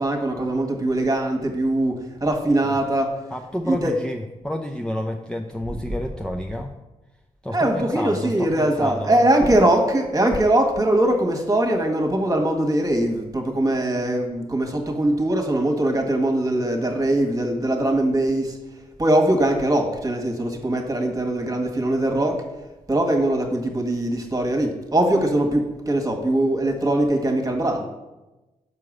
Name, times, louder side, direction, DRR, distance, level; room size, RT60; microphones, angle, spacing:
voice 1, 0.0-3.3 3.6-3.9 7.5-18.6 19.0-22.4 22.9-27.8, right 1 dB, 20° right, 3 dB, 1.7 m, -21 dB
voice 2, 3.3-6.7 7.4-9.5, left 1 dB, 5° left, 2 dB, 0.7 m, -30 dB
5.8 x 4.7 x 6.4 m, 1.0 s
hypercardioid pair, 50°, 16 cm